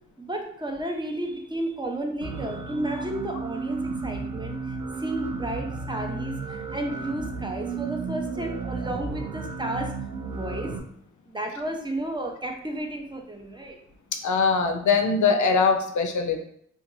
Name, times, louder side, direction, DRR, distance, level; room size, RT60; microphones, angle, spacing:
voice 1, 0.2-9.9 10.2-10.7 11.3-13.8, right 1 dB, 15° right, 2 dB, 0.5 m, -32 dB
sound 1, 2.2-10.8, right 4 dB, 75° right, 0.5 m, -33 dB
voice 2, 14.2-16.4, left 5 dB, 75° left, 5 dB, 0.4 m, -22 dB
2.5 x 2.2 x 2.9 m, 0.68 s
cardioid pair, 60°, 30 cm